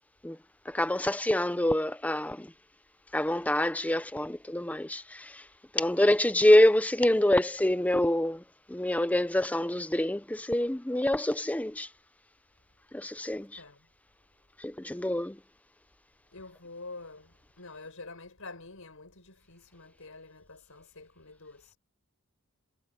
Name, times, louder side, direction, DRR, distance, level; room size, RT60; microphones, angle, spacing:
voice 1, 0.7-2.5 3.1-5.4 5.7-8.4 8.7-11.9 12.9-13.5 14.6-15.4, left 1 dB, 5° left, 0.6 m, -26 dB
voice 2, 13.5-13.9 14.9-15.1 16.3-21.8, left 3 dB, 65° left, 6.4 m, -47 dB
head